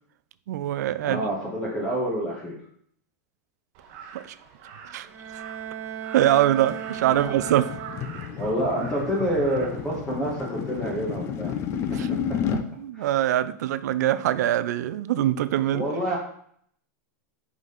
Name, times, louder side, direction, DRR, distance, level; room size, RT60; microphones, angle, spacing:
voice 1, 0.5-1.2 4.1-4.2 4.9-5.1 6.1-7.8 11.9-12.1 12.5-15.9, right 12 dB, 75° right, 0.4 m, -23 dB
voice 2, 1.0-2.5 7.1-7.3 8.4-11.5 12.9-13.1 15.7-16.2, right 1 dB, 10° left, 1.3 m, -27 dB
Crow, 3.7-11.1, right 6 dB, 45° right, 1.0 m, -45 dB
Bowed string instrument, 5.0-8.4, right 9 dB, 20° right, 1.0 m, -37 dB
sound 1, 6.7-12.7, left 8 dB, 30° left, 0.5 m, -32 dB
5.2 x 5.0 x 3.9 m
supercardioid pair, 155°, 9 cm